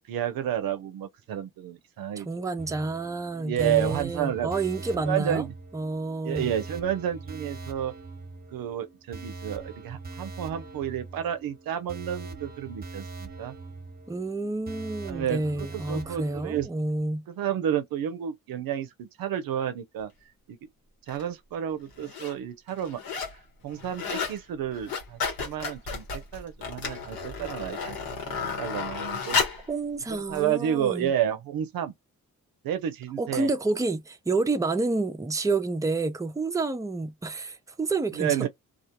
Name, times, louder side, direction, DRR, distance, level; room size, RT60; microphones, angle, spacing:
voice 1, 0.1-2.5 3.4-4.5 4.9-5.5 6.2-7.9 8.5-13.6 15.0-16.7 17.3-20.1 20.5-20.6 21.1-23.0 23.6-28.0 28.3-29.6 30.1-31.9 32.6-33.5 38.1-38.5, right 10 dB, 80° right, 0.6 m, -31 dB
voice 2, 2.2-5.5 5.7-6.5 14.1-17.2 29.7-31.1 33.2-38.5, right 3 dB, 10° right, 0.5 m, -29 dB
sound 1, 2.6-16.6, right 3 dB, 25° right, 0.9 m, -42 dB
sound 2, 21.1-21.2 21.9-22.3 22.7-23.4 23.7-24.4 24.7-29.7 30.4-30.5, left 5 dB, 85° left, 1.1 m, -32 dB
2.3 x 2.0 x 2.8 m
cardioid pair, 55°, 35 cm